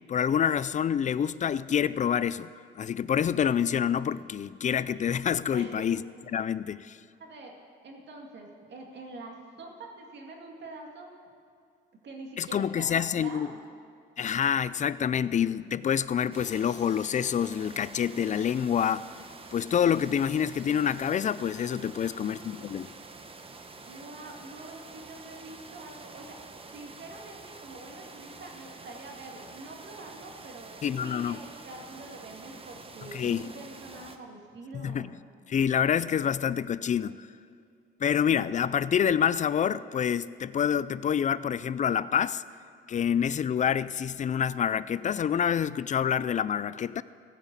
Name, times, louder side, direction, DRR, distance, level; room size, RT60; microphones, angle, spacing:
voice 1, 0.1-2.5 2.8-6.0 6.3-7.0 12.4-13.5 14.2-19.1 19.5-22.9 30.8-31.4 33.1-33.5 34.7-35.1 35.5-37.3 38.0-42.4 42.9-47.0, left 8 dB, 40° left, 17 dB, 0.4 m, -27 dB
voice 2, 5.5-5.8 7.2-7.5 7.8-11.1 12.0-13.6 21.9-22.7 23.8-26.4 26.7-35.2, right 2 dB, 60° right, 1 dB, 2.2 m, -45 dB
sound 1, 16.3-34.2, right 3 dB, 30° right, 1.0 m, -47 dB
15.5 x 5.8 x 8.2 m, 2.5 s
cardioid pair, 90°, 20 cm